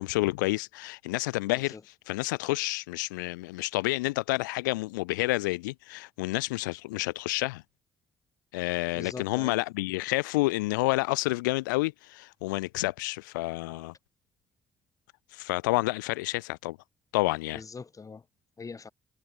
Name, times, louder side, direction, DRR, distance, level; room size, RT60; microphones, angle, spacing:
voice 1, 0.0-7.6 8.5-13.9 15.3-16.8 17.1-17.6, left 21 dB, 80° left, 0.4 m, -29 dB
voice 2, 8.9-9.6 17.5-18.2 18.6-18.9, left 5 dB, 35° left, 1.8 m, -42 dB
hypercardioid pair, 45°, 10 cm